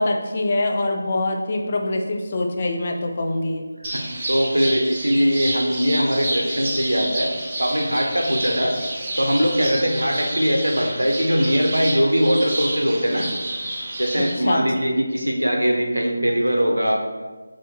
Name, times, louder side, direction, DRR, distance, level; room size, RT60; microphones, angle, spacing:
voice 1, 0.0-3.6 14.2-14.7, left 2 dB, 35° left, 2 dB, 0.4 m, -24 dB
sound 1, 3.8-14.3, right 1 dB, 25° right, 0.7 m, -29 dB
voice 2, 3.9-7.3 7.6-8.7 9.2-13.3 14.0-17.0, equal, 80° right, 1 dB, 0.6 m, -21 dB
5.5 x 2.5 x 2.8 m, 1.3 s
figure-of-eight pair, 160°, 0 cm